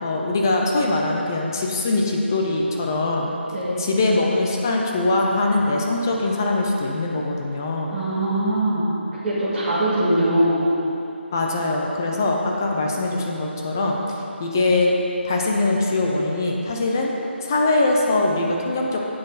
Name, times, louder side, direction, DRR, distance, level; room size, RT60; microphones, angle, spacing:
voice 1, 0.0-3.3 3.8-8.0 11.3-14.0 14.4-15.0 15.2-17.1 17.4-19.0, left 2 dB, 15° left, 0 dB, 0.6 m, -22 dB
voice 2, 3.5-3.9 7.9-8.9 9.2-10.6, right 1 dB, 10° right, -15 dB, 1.9 m, -21 dB
12.5 x 7.7 x 4.1 m, 2.9 s
figure-of-eight pair, 175°, 7 cm